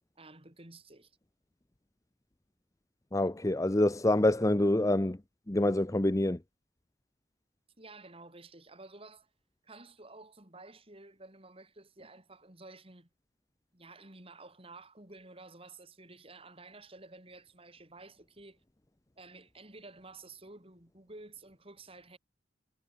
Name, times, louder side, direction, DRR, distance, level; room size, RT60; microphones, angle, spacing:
voice 1, 0.2-1.1 7.8-9.3 9.6-13.1 13.7-18.6 19.2-22.2, right 2 dB, 30° right, 5.5 m, -52 dB
voice 2, 3.1-5.2 5.5-6.4, left 1 dB, 20° left, 0.8 m, -26 dB
head